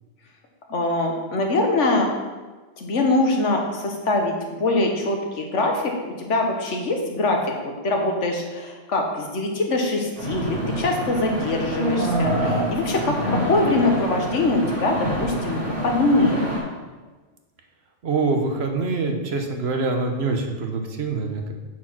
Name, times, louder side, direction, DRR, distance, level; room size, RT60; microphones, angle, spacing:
voice 1, 0.7-2.1 2.8-16.4, left 2 dB, 90° left, 2 dB, 1.6 m, -23 dB
sound 1, 10.2-16.6, equal, 80° right, 3.6 m, -26 dB
voice 2, 18.0-21.5, right 3 dB, 65° right, 3 dB, 1.3 m, -25 dB
8.3 x 4.7 x 6.0 m, 1.3 s
omnidirectional pair, 1.2 m